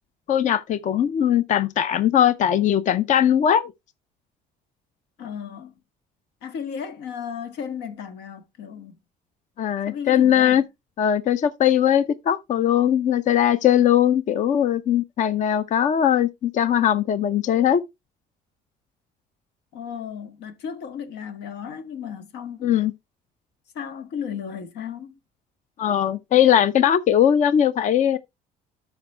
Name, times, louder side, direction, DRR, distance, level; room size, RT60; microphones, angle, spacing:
voice 1, 0.3-3.7 9.6-10.6 11.0-17.8 22.6-22.9 25.8-28.2, left 10 dB, 50° left, 0.5 m, -20 dB
voice 2, 5.2-5.7 6.4-9.0 9.9-10.6 19.7-22.7 23.7-25.1, left 7 dB, 85° left, 1.4 m, -34 dB
12.5 x 5.1 x 3.2 m
cardioid pair, 110°, 17 cm